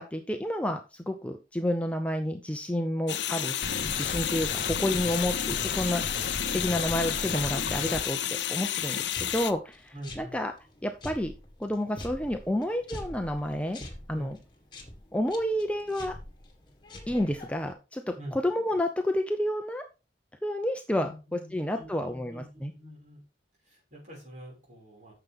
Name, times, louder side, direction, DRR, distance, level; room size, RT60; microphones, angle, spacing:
voice 1, 0.0-6.0 6.5-10.5 10.8-11.3 11.6-13.8 14.1-14.4 15.1-16.1 17.1-19.8 20.4-22.7, left 1 dB, 5° left, 5 dB, 0.7 m, -30 dB
sound 1, 3.1-9.5, left 10 dB, 80° left, 0.8 m, -31 dB
sound 2, 3.6-8.0, left 3 dB, 55° left, 0.8 m, -35 dB
sound 3, 8.8-17.7, left 1 dB, 25° left, 1.9 m, -45 dB
voice 2, 9.9-10.4 14.1-14.3 18.2-18.4 21.0-23.2 23.6-25.1, equal, 40° right, -2 dB, 5.7 m, -45 dB
9.6 x 6.9 x 3.6 m, 0.30 s
head